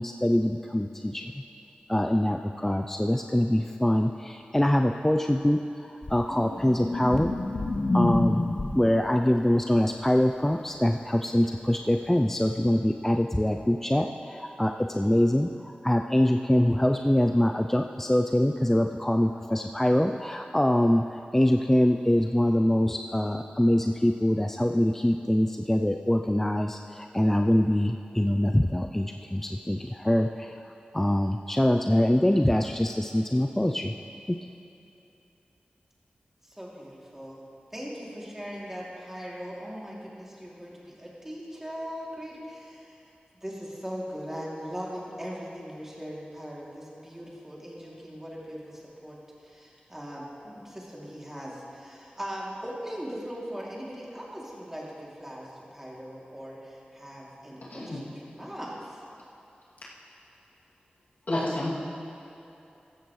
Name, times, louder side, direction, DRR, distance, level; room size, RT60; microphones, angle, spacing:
voice 1, 0.0-1.3 1.9-7.3 7.9-8.4 8.7-30.7 30.9-33.9 34.3-34.4, left 1 dB, 10° left, 4 dB, 0.4 m, -24 dB
sound 1, 6.0-9.0 11.8-11.9, left 2 dB, 40° left, 0.8 m, -28 dB
voice 2, 36.4-37.4 37.7-43.0 43.3-59.0, equal, 10° right, -5 dB, 2.8 m, -40 dB
voice 3, 57.7-58.0 61.3-61.7, left 1 dB, 65° left, -8 dB, 2.6 m, -29 dB
15.0 x 13.5 x 3.2 m, 2.9 s
wide cardioid pair, 70°, 3 cm